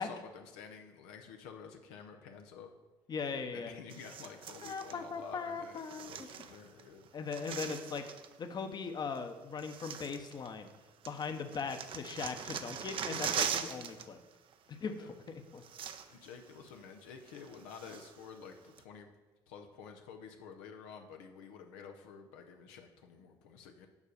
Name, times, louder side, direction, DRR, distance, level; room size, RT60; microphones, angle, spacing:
voice 1, 0.0-2.7 3.4-7.1 14.9-15.1 16.1-19.1 19.5-23.9, left 6 dB, 85° left, 4 dB, 0.7 m, -50 dB
voice 2, 3.1-3.7 4.6-6.3 7.1-8.0 8.4-10.7 11.1-14.2 14.7-15.6, left 5 dB, 40° left, 7 dB, 0.9 m, -39 dB
sound 1, 3.9-5.0 5.8-6.8 7.1-8.3 9.2-9.3 9.6-10.8 11.1-14.1 14.3-14.5 15.3-15.4 15.6-16.3 16.7-16.8 17.3-18.3 18.8-18.9, right 8 dB, 55° right, 0.6 m, -41 dB
7.3 x 4.9 x 6.6 m, 1.2 s
supercardioid pair, 70°, 11 cm